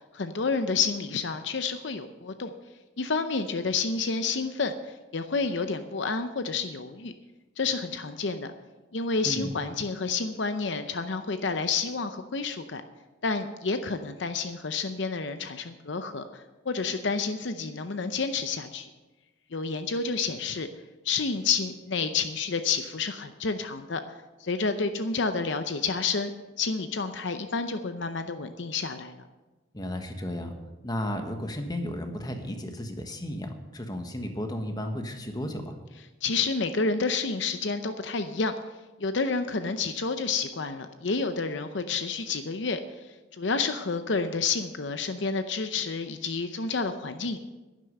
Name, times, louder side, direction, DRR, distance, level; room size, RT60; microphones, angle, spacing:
voice 1, 0.1-2.5 3.0-7.1 7.6-8.5 8.9-12.8 13.2-18.9 19.5-20.7 21.0-24.0 24.4-26.3 26.6-29.2 36.2-38.5 39.0-42.8 43.4-47.4, left 4 dB, 65° left, 9 dB, 0.7 m, -29 dB
voice 2, 29.7-30.6 30.8-35.7, left 1 dB, 20° left, 5 dB, 1.3 m, -34 dB
11.0 x 10.5 x 6.6 m, 1.2 s
head